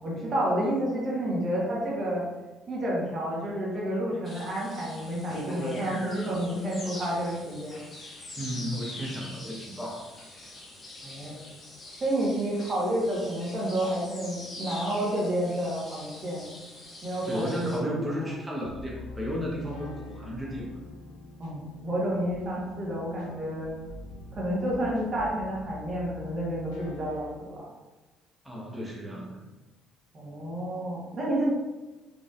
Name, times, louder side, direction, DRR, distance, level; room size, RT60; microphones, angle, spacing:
voice 1, 0.0-2.2 2.7-7.8 11.0-11.3 12.0-16.4 17.0-18.1 21.4-23.7 24.3-27.7 30.1-31.5, right 1 dB, 45° right, -4 dB, 1.3 m, -30 dB
sound 1, 4.2-17.8, left 1 dB, 40° left, 1.3 m, -42 dB
voice 2, 8.4-10.1 17.2-20.8 28.4-29.4, equal, 10° right, -5 dB, 1.2 m, -33 dB
sound 2, 18.6-27.3, left 2 dB, 75° left, 0.6 m, -45 dB
4.1 x 3.3 x 2.5 m, 1.1 s
hypercardioid pair, 55°, 0 cm